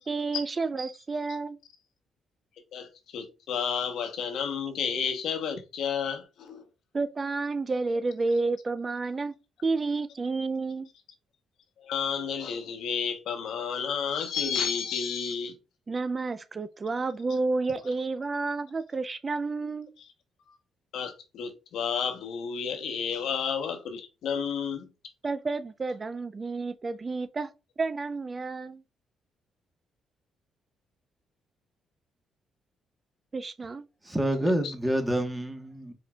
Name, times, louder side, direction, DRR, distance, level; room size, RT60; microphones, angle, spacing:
voice 1, 0.0-1.6 6.9-9.3 9.6-10.9 15.9-19.9 25.2-27.5 27.8-28.8 33.3-33.8, right 3 dB, 30° right, 0.4 m, -30 dB
voice 2, 2.7-6.6 11.8-15.5 20.5-20.6 20.9-24.9 34.4-34.7, left 6 dB, 75° left, 1.0 m, -31 dB
voice 3, 34.0-35.9, right 1 dB, 10° right, 1.2 m, -27 dB
4.8 x 4.4 x 2.3 m
cardioid pair, 90°, 0 cm